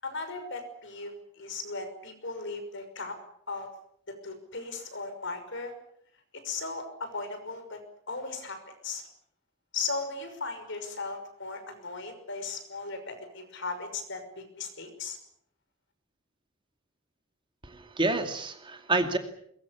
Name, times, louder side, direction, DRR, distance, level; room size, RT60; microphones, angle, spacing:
voice 1, 0.0-3.2 3.5-3.7 4.2-5.7 6.4-7.8 8.1-9.0 9.7-15.2, left 3 dB, 60° left, 8 dB, 5.8 m, -37 dB
voice 2, 17.6-19.2, right 2 dB, 25° right, 6 dB, 2.4 m, -28 dB
23.0 x 21.5 x 8.4 m, 0.70 s
head